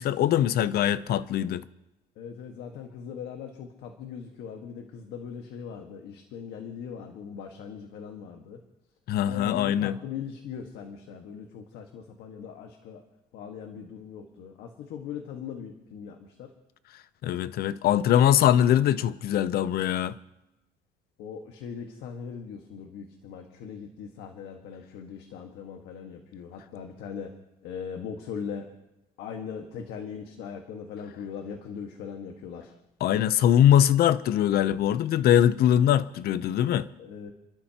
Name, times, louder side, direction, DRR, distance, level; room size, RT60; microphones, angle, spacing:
voice 1, 0.0-1.6 9.1-10.0 17.2-20.1 33.0-36.9, left 11 dB, 65° left, 0.7 m, -22 dB
voice 2, 2.2-8.6 9.3-13.0 13.3-16.5 21.2-27.3 27.6-28.7 29.2-32.7 37.0-37.3, left 7 dB, 85° left, 1.6 m, -40 dB
30.0 x 12.0 x 2.9 m
cardioid pair, 110°, 17 cm